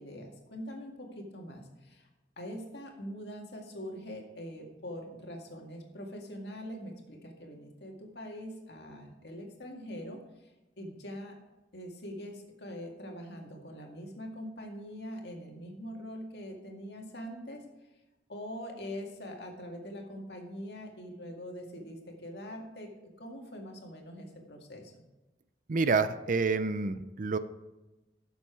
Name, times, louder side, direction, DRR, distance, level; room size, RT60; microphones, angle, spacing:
voice 1, 0.0-2.1 2.4-10.5 10.8-11.4 11.7-17.6 18.3-22.9 23.2-25.0, equal, 65° left, 1 dB, 2.0 m, -43 dB
voice 2, 25.7-27.4, right 4 dB, 45° right, 12 dB, 0.5 m, -28 dB
12.0 x 7.1 x 4.7 m, 1.0 s
head